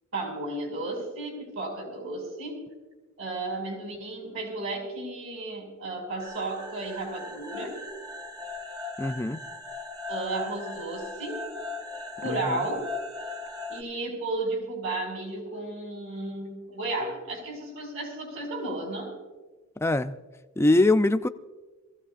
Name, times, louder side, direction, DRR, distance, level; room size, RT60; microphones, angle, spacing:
voice 1, 0.1-2.6 3.2-7.8 10.1-11.4 12.2-12.9 13.7-19.1, right 2 dB, 70° right, 5.7 m, -33 dB
sound 1, 6.2-13.8, left 3 dB, 15° right, 0.8 m, -38 dB
voice 2, 9.0-9.4 12.2-12.6 19.8-20.2 20.6-21.3, left 2 dB, 10° left, 0.4 m, -23 dB
23.0 x 16.0 x 2.5 m
head